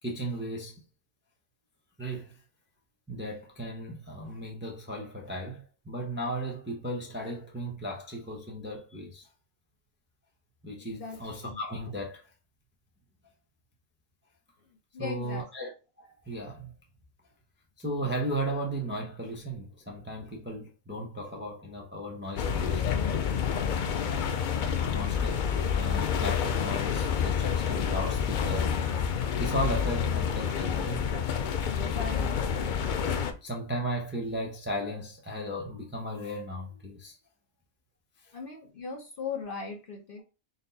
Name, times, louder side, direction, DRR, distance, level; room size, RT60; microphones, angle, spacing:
voice 1, 0.0-0.8 2.0-2.4 3.1-9.3 10.6-12.3 15.0-15.7 16.0-16.7 17.8-23.0 24.6-28.7 29.3-31.1 33.4-37.2 38.2-38.3, right 1 dB, 10° right, 0.6 m, -36 dB
voice 2, 10.8-11.6 14.9-15.4 31.8-32.7 38.3-40.2, left 5 dB, 50° left, 0.9 m, -39 dB
sound 1, 22.4-33.3, left 7 dB, 90° left, 0.4 m, -28 dB
4.1 x 2.2 x 3.9 m
omnidirectional pair, 1.4 m